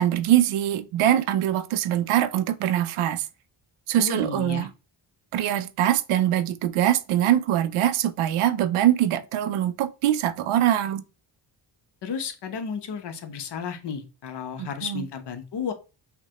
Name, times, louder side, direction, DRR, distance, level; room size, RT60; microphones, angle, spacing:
voice 1, 0.0-3.2 3.9-4.7 5.3-11.0 14.6-15.0, right 12 dB, 85° right, 0.5 m, -23 dB
voice 2, 4.0-4.7 12.0-15.7, left 6 dB, 55° left, 0.9 m, -33 dB
5.7 x 2.2 x 2.8 m
cardioid pair, 100°, 49 cm